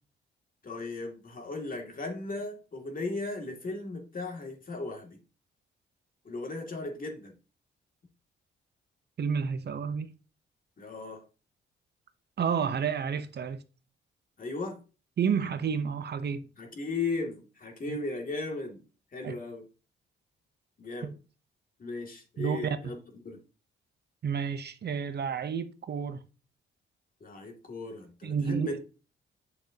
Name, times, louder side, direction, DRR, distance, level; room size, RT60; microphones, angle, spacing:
voice 1, 0.6-5.2 6.2-7.3 10.8-11.2 14.4-14.8 16.6-18.8 19.1-19.6 20.8-21.1 21.8-23.4 27.2-28.8, left 3 dB, 40° left, 2.4 m, -36 dB
voice 2, 9.2-10.1 12.4-13.6 15.2-16.5 17.9-18.0 19.2-19.3 21.0-21.1 22.4-22.8 24.2-26.2 28.2-28.8, right 6 dB, 55° right, 0.8 m, -30 dB
8.7 x 6.5 x 2.9 m
cardioid pair, 85°, 21 cm